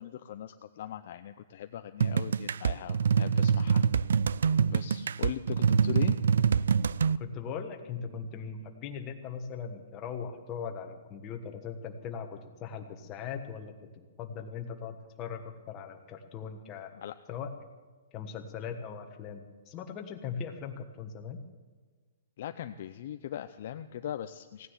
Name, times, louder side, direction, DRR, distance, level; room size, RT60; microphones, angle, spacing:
voice 1, 0.0-3.9 4.7-6.2 16.9-17.2 22.4-24.7, left 11 dB, 45° left, 8 dB, 0.5 m, -39 dB
sound 1, 2.0-7.2, right 6 dB, 85° right, 0.4 m, -25 dB
voice 2, 7.2-13.7 14.2-16.9 17.3-17.5 18.1-21.4, left 6 dB, 20° left, 4 dB, 1.4 m, -39 dB
17.0 x 9.7 x 7.3 m, 1.4 s
hypercardioid pair, 170°, 0 cm